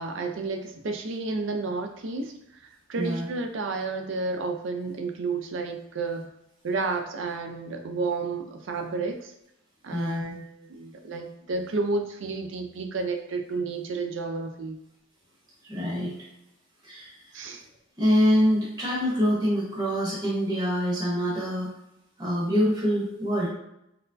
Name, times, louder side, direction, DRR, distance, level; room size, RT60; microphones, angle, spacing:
voice 1, 0.0-2.3 2.6-6.3 6.6-9.3 9.8-14.8 17.3-17.6, right 3 dB, 65° right, 4 dB, 0.4 m, -31 dB
voice 2, 2.9-3.3 9.9-10.2 15.6-16.1 16.8-17.4 18.0-21.7 22.2-23.5, equal, 20° right, -6 dB, 0.8 m, -25 dB
4.3 x 2.1 x 2.6 m, 0.83 s
head